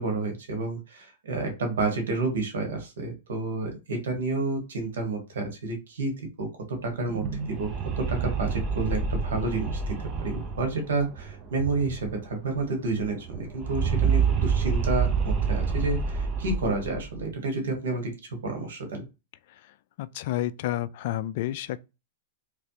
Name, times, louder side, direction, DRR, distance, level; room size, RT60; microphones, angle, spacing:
voice 1, 0.0-6.1 6.4-7.7 8.0-18.1 18.4-19.0, right 3 dB, 85° right, 1.6 m, -30 dB
sound 1, 7.0-12.3 12.5-12.6 12.9-17.2, right 6 dB, 30° right, 0.7 m, -28 dB
voice 2, 20.0-21.8, left 13 dB, 55° left, 0.3 m, -30 dB
3.2 x 3.2 x 2.8 m
hypercardioid pair, 140°, 0 cm